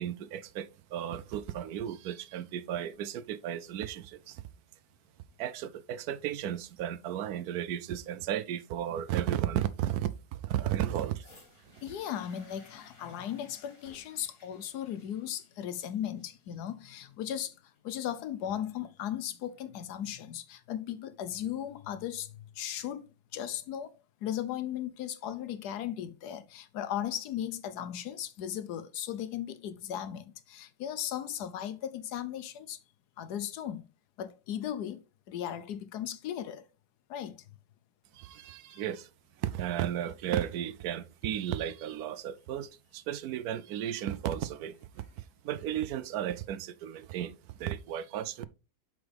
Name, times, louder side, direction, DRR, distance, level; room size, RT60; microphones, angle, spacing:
voice 1, 0.0-4.4 5.4-11.3 38.1-39.1 39.4-48.5, right 11 dB, 75° right, 1.1 m, -34 dB
sound 1, 11.2-19.2 20.0-20.1, left 3 dB, 50° left, 3.3 m, -59 dB
voice 2, 11.8-17.5 17.8-23.0 23.3-23.9 24.2-32.8 33.2-33.8 34.2-36.6 37.1-37.4, left 10 dB, 85° left, 1.3 m, -37 dB
7.8 x 5.0 x 3.3 m
omnidirectional pair, 1.7 m